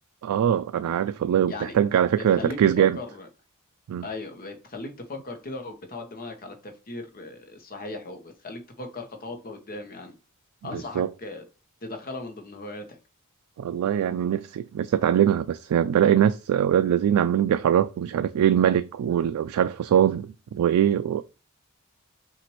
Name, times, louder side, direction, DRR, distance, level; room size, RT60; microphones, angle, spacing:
voice 1, 0.2-3.0 3.9-4.0 10.7-11.1 13.6-21.2, right 9 dB, 75° right, 0.3 m, -22 dB
voice 2, 2.2-3.3 4.0-10.2 10.6-11.4 11.8-12.8, left 2 dB, 40° left, 1.0 m, -38 dB
5.9 x 2.6 x 3.0 m
head